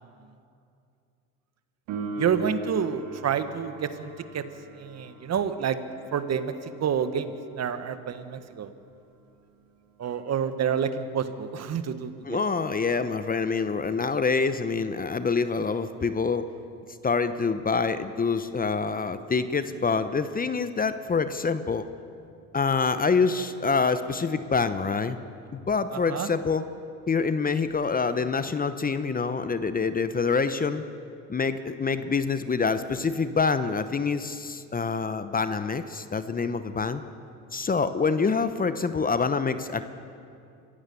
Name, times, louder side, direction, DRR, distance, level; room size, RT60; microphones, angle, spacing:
Piano, 1.9-12.3 19.8-19.9, right 2 dB, 65° right, 4.4 m, -42 dB
voice 1, 2.2-4.4 4.8-5.8 6.1-8.7 10.0-12.4 25.9-26.3, right 7 dB, 40° right, 11 dB, 1.4 m, -29 dB
voice 2, 12.2-16.5 17.0-21.9 22.5-25.2 25.5-26.6 27.1-30.8 31.3-37.0 37.5-39.9, left 5 dB, 25° left, 11 dB, 0.9 m, -26 dB
25.5 x 15.5 x 7.0 m, 2.5 s
supercardioid pair, 80°, 38 cm